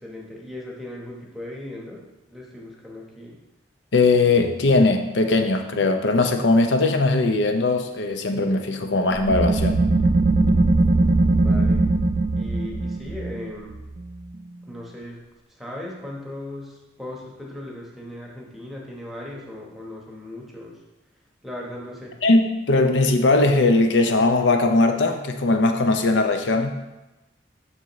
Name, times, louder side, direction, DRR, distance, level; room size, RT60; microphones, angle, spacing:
voice 1, 0.0-2.0 2.3-3.4 11.3-11.9 12.3-13.9 14.6-15.2 15.5-20.8 21.4-22.1, left 1 dB, ahead, -3 dB, 1.0 m, -37 dB
voice 2, 3.9-9.8 22.2-26.7, left 2 dB, 80° left, 6 dB, 0.6 m, -19 dB
sound 1, 9.2-14.5, right 2 dB, 45° right, 0.3 m, -20 dB
7.3 x 6.2 x 3.1 m, 1.0 s
head